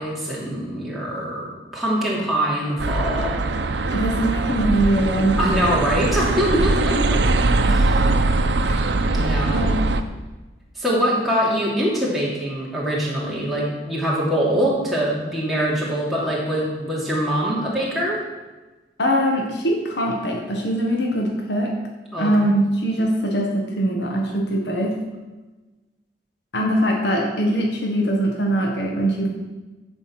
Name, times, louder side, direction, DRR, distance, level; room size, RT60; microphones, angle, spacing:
voice 1, 0.0-3.4 5.4-7.2 7.6-8.2 9.2-9.6 10.8-18.2 22.1-22.3, equal, ahead, -7 dB, 2.8 m, -23 dB
sound 1, 2.8-10.0, right 2 dB, 85° right, 0.7 m, -21 dB
voice 2, 3.9-5.4 6.5-6.6 8.7-8.8 9.5-9.9 19.0-21.8 22.2-25.0 26.5-29.3, right 1 dB, 80° left, 0 dB, 1.5 m, -22 dB
14.0 x 5.3 x 6.0 m, 1.2 s
head